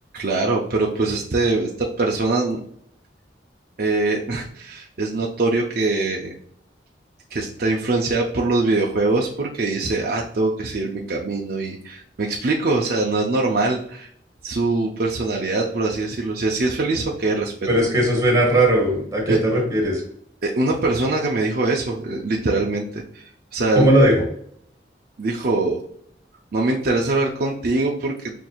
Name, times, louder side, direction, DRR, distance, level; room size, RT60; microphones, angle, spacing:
voice 1, 0.1-2.6 3.8-6.3 7.3-14.1 14.4-17.5 19.3-19.4 20.4-24.0 25.2-25.8 26.5-28.3, right 2 dB, 55° right, -1 dB, 0.5 m, -23 dB
voice 2, 17.7-20.0 23.7-24.2, right 1 dB, 20° right, -1 dB, 1.3 m, -18 dB
5.8 x 2.6 x 2.3 m, 0.62 s
head